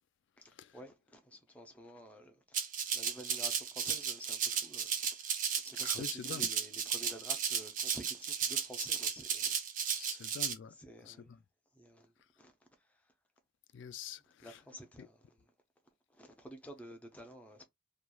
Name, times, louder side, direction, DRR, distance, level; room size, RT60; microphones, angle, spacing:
voice 1, 0.7-2.6 2.9-4.9 5.6-9.5 9.9-10.2 10.8-11.2 11.8-12.1 12.4-12.5 14.4-15.1 16.2-17.6, equal, 5° left, 0.5 m, -51 dB
Rattle (instrument), 2.5-10.5, right 7 dB, 40° right, 0.5 m, -34 dB
voice 2, 5.8-6.5 9.9-10.7 11.0-11.2 13.7-14.6 15.0-15.1, left 8 dB, 60° left, 0.3 m, -45 dB
3.0 x 2.4 x 2.3 m
head